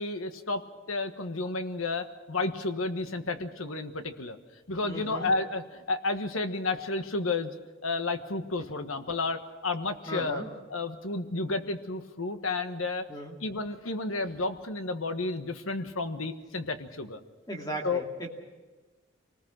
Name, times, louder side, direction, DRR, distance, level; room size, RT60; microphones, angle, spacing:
voice 1, 0.0-4.4 4.7-7.5 7.8-10.4 10.7-13.0 13.4-17.2 17.8-18.0, left 3 dB, 80° left, 8 dB, 1.4 m, -31 dB
voice 2, 4.8-5.3 10.1-10.5 13.1-13.3 17.5-18.3, right 1 dB, 20° left, 1 dB, 2.5 m, -37 dB
25.5 x 19.5 x 6.2 m, 1.2 s
head